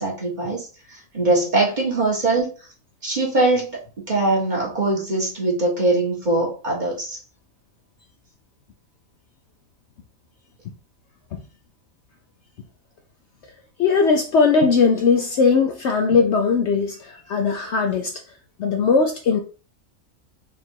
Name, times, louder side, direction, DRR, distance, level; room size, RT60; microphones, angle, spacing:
voice 1, 0.0-2.5 3.0-7.2, right 2 dB, 35° right, 1.5 m, -22 dB
voice 2, 13.8-18.1 18.6-19.4, left 5 dB, 65° left, 0.7 m, -19 dB
3.9 x 2.6 x 4.4 m
omnidirectional pair, 1.5 m